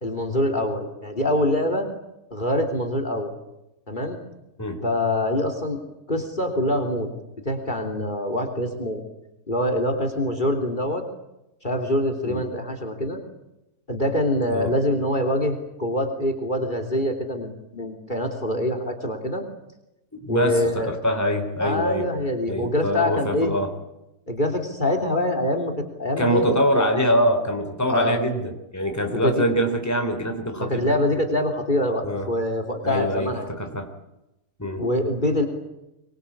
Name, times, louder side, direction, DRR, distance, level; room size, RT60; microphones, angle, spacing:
voice 1, 0.0-1.9 2.3-3.3 3.9-4.2 4.8-5.8 6.1-7.1 7.4-9.0 9.5-11.0 11.6-13.2 13.9-19.4 20.3-20.9 21.6-23.5 24.3-26.4 26.7-26.9 27.9-28.2 29.1-29.4 30.6-33.6 34.8-35.5, left 1 dB, 30° left, 7 dB, 3.4 m, -25 dB
voice 2, 20.1-22.1 22.5-23.7 26.2-31.0 32.0-32.3 32.8-33.9 34.6-34.9, equal, 10° left, 6 dB, 3.4 m, -24 dB
25.5 x 22.5 x 8.6 m, 0.91 s
omnidirectional pair, 1.6 m